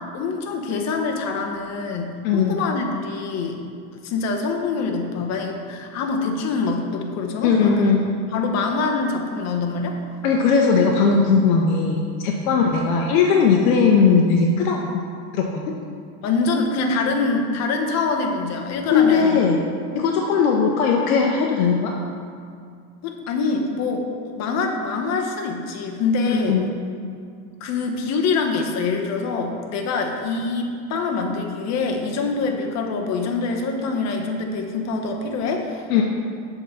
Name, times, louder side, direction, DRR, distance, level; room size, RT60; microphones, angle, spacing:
voice 1, 0.1-3.6 3.9-7.9 8.3-10.0 12.4-12.6 16.2-19.5 23.0-24.1 24.3-26.6 27.6-36.0, left 4 dB, 35° left, 2 dB, 1.0 m, -25 dB
voice 2, 2.2-2.6 7.4-8.0 10.2-14.8 15.3-15.6 18.9-19.6 19.9-21.9 26.2-26.7 35.9-36.0, left 5 dB, 65° left, 0 dB, 0.9 m, -18 dB
7.3 x 3.9 x 5.6 m, 2.3 s
supercardioid pair, 120°, 45 cm